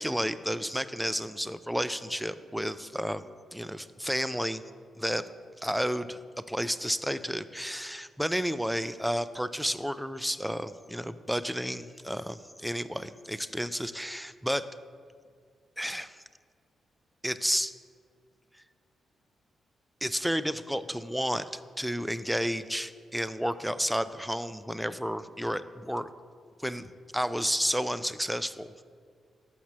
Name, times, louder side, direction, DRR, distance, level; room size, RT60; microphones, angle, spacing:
voice 1, 0.0-4.6 5.0-5.3 5.6-6.2 6.5-14.7 15.8-16.2 17.2-17.7 20.0-26.1 26.6-26.9 27.1-28.8, equal, ahead, 13 dB, 0.3 m, -31 dB
6.1 x 5.9 x 5.5 m, 2.1 s
cardioid pair, 70°, 0 cm